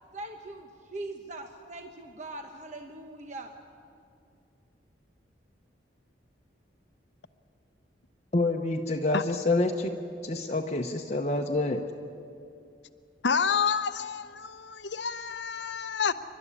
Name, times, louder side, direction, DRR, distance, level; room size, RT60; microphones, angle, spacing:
voice 1, 0.1-3.5, right 2 dB, 40° right, 1.0 m, -41 dB
voice 2, 8.3-9.9 10.2-11.8, left 2 dB, 35° left, 0.9 m, -27 dB
voice 3, 13.2-16.1, left 6 dB, 70° left, 0.8 m, -29 dB
29.0 x 12.5 x 9.8 m
head